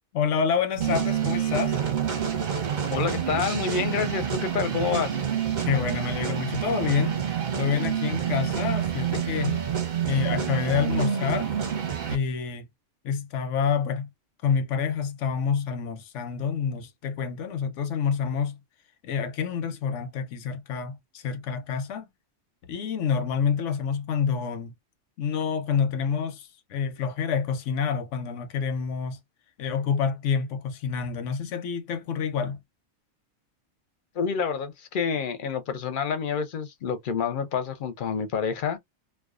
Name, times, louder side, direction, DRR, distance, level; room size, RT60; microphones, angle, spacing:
voice 1, 0.1-1.8 5.6-7.2 7.6-9.6 10.1-11.5 12.1-12.7 13.0-14.1 14.4-18.6 19.0-22.1 22.6-24.7 25.2-29.2 29.6-32.6, left 6 dB, 90° left, 1.0 m, -28 dB
sound 1, 0.8-12.2, right 9 dB, 50° right, 0.7 m, -28 dB
voice 2, 2.9-5.2 34.2-38.8, left 6 dB, 55° left, 0.6 m, -28 dB
2.4 x 2.2 x 2.3 m
omnidirectional pair, 1.2 m